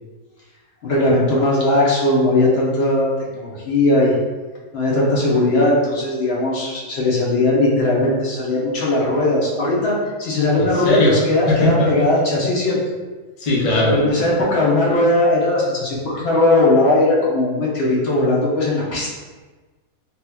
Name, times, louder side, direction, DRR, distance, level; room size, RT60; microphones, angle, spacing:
voice 1, 0.8-4.1 4.7-12.8 13.9-19.1, left 2 dB, 55° left, -5 dB, 0.7 m, -18 dB
voice 2, 10.5-11.2 11.5-11.9 13.4-14.0, left 1 dB, 75° left, -6 dB, 0.3 m, -18 dB
3.4 x 2.9 x 2.2 m, 1.3 s
omnidirectional pair, 1.7 m